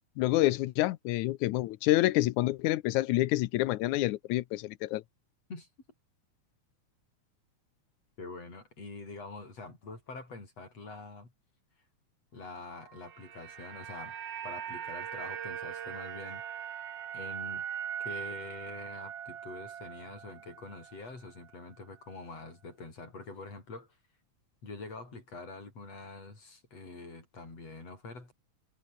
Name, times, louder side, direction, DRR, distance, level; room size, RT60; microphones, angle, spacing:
voice 1, 0.2-5.0, left 17 dB, 85° left, 2.2 m, -28 dB
voice 2, 8.2-11.3 12.3-14.2 14.4-16.4 17.1-17.7 18.0-24.0 24.6-28.3, left 3 dB, 55° left, 8.8 m, -45 dB
sound 1, 12.8-21.1 21.4-21.6, right 9 dB, 55° right, 2.6 m, -41 dB
omnidirectional pair, 3.4 m